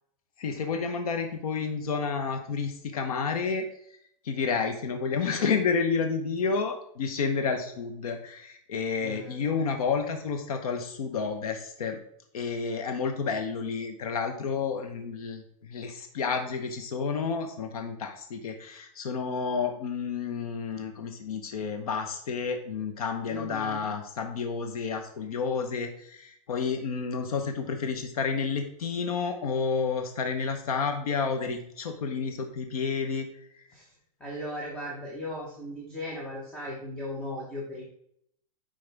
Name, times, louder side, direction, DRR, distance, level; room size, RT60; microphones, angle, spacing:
voice 1, 0.4-3.7 4.2-12.0 12.3-33.3, left 5 dB, 75° left, 6 dB, 1.0 m, -30 dB
voice 2, 9.0-9.4 23.3-23.9 33.7-33.8 34.2-37.8, left 1 dB, 5° left, -3 dB, 1.0 m, -37 dB
8.8 x 5.2 x 3.4 m, 0.70 s
supercardioid pair, 165°, 19 cm